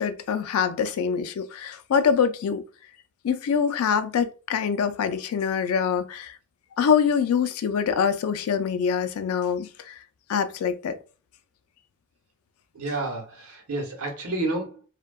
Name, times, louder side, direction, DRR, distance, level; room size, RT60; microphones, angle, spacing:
voice 1, 0.0-2.6 3.2-6.4 6.8-10.0 10.3-11.0, left 7 dB, 75° left, 0.3 m, -24 dB
voice 2, 12.7-14.8, right 2 dB, 85° right, 0.8 m, -30 dB
2.6 x 2.2 x 2.2 m
head